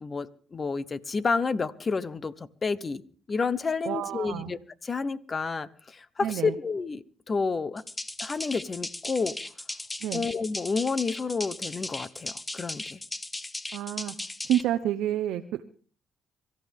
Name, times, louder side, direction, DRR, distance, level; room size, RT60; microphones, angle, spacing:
voice 1, 0.0-3.0 3.3-7.8 8.2-9.4 10.1-13.0, left 4 dB, 35° left, 16 dB, 1.0 m, -30 dB
voice 2, 3.8-4.5 6.2-6.5 10.0-10.2 13.7-14.1 14.4-15.6, right 12 dB, 85° right, 7 dB, 0.8 m, -29 dB
sound 1, 7.8-14.6, left 2 dB, 20° left, 1.2 m, -37 dB
24.0 x 14.0 x 3.6 m, 0.42 s
cardioid pair, 90°, 0 cm